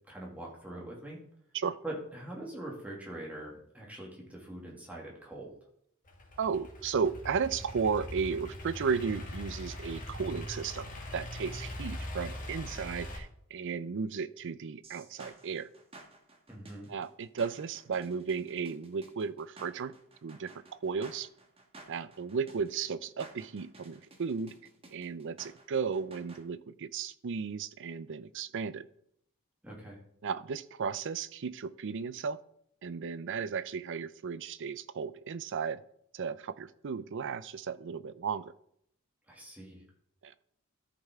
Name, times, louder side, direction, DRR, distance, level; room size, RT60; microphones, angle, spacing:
voice 1, 0.1-1.2 1.8-5.5 16.5-16.9 29.6-30.0 39.3-39.8, right 1 dB, 5° right, -3 dB, 2.1 m, -43 dB
Idling / Accelerating revving vroom, 6.1-13.2, left 1 dB, 40° left, 1.9 m, -41 dB
voice 2, 6.4-10.9 11.1-15.7 16.9-19.9 20.2-20.5 20.8-21.3 21.9-24.5 24.9-28.9 30.2-32.4 32.8-35.8 36.1-38.5 40.2-40.3, right 6 dB, 60° right, 16 dB, 0.4 m, -34 dB
sound 1, 14.8-26.4, right 2 dB, 25° right, 1.4 m, -54 dB
13.5 x 5.6 x 3.5 m, 0.70 s
head